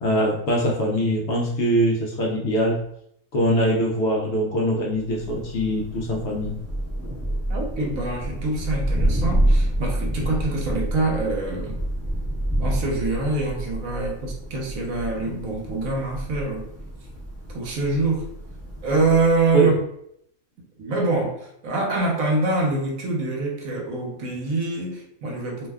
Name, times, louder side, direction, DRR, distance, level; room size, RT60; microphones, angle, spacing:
voice 1, 0.0-2.8 3.3-6.6 19.5-19.8, equal, 60° left, -2 dB, 0.7 m, -22 dB
Thunder, 4.9-19.5, right 1 dB, 10° right, 0.9 m, -28 dB
voice 2, 7.5-11.8 12.6-16.6 17.5-18.2 18.8-19.8 20.8-25.7, right 3 dB, 75° right, 0 dB, 1.1 m, -25 dB
2.7 x 2.2 x 3.4 m, 0.73 s
omnidirectional pair, 1.5 m